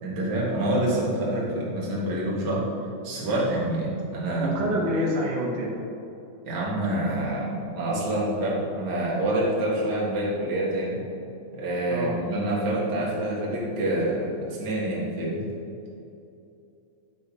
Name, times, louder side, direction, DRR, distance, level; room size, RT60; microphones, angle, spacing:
voice 1, 0.0-2.6 3.0-4.7 6.4-11.0 11.5-15.5, right 1 dB, 45° right, -5 dB, 1.7 m, -27 dB
voice 2, 4.4-5.7 11.9-12.2, equal, 75° right, -2 dB, 2.4 m, -27 dB
9.9 x 6.0 x 2.9 m, 2.7 s
omnidirectional pair, 3.7 m